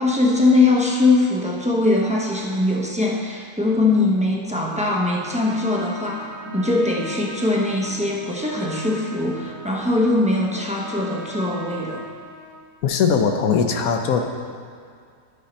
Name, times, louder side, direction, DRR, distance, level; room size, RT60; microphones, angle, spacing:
voice 1, 0.0-6.2 6.5-12.0, left 2 dB, 5° right, -3 dB, 0.5 m, -21 dB
sound 1, 3.7-12.2, left 4 dB, 45° left, 1.4 m, -41 dB
Trumpet, 5.0-12.7, right 1 dB, 85° right, 1.7 m, -39 dB
voice 2, 12.8-14.2, left 6 dB, 70° left, 5 dB, 1.2 m, -20 dB
12.0 x 5.4 x 4.3 m, 2.2 s
omnidirectional pair, 1.6 m